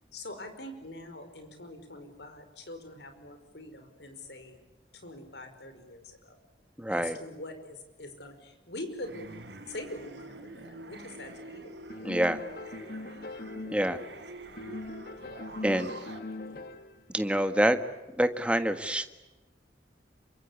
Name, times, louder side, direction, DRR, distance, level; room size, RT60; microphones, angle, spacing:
voice 1, 0.1-4.6 4.9-6.4 6.9-9.3 9.7-11.7 16.5-16.6, left 1 dB, 75° left, 7 dB, 5.2 m, -44 dB
voice 2, 6.8-7.2 12.0-12.4 13.7-14.0 15.6-15.9 17.1-17.8 18.2-19.1, right 1 dB, 5° right, 8 dB, 1.5 m, -26 dB
sound 1, 9.0-16.2, right 2 dB, 90° right, 4.2 m, -46 dB
sound 2, 11.9-14.2 14.6-17.0, left 2 dB, 55° left, 1.8 m, -41 dB
27.5 x 24.5 x 8.4 m, 1.1 s
head